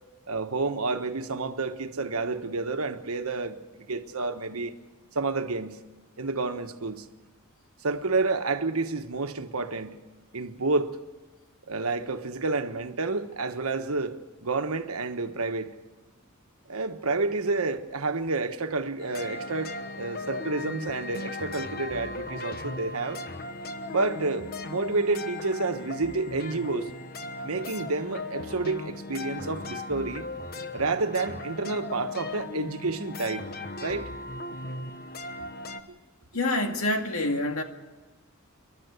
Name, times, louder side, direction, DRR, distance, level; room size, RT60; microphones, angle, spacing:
voice 1, 0.3-4.7 5.1-5.8 6.2-7.1 7.8-10.0 10.3-11.0 11.7-15.7 16.7-23.2 23.9-26.9 27.4-30.3 30.7-33.5 33.8-34.1 35.9-36.0, right 3 dB, 85° right, 1.3 m, -29 dB
sound 1, 19.0-35.8, left 2 dB, 45° left, 1.1 m, -37 dB
voice 2, 36.3-37.6, left 1 dB, 80° left, 2.1 m, -26 dB
28.5 x 12.0 x 8.3 m
head